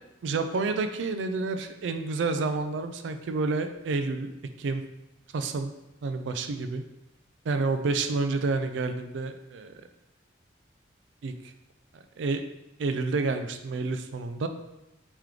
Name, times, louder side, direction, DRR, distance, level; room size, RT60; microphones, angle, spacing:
voice 1, 0.2-4.3 4.6-4.8 5.3-5.7 6.0-6.8 7.5-9.7 11.2-11.3 12.2-12.4 12.8-14.5, right 3 dB, 75° right, 8 dB, 0.4 m, -29 dB
3.2 x 3.1 x 3.7 m, 0.93 s
head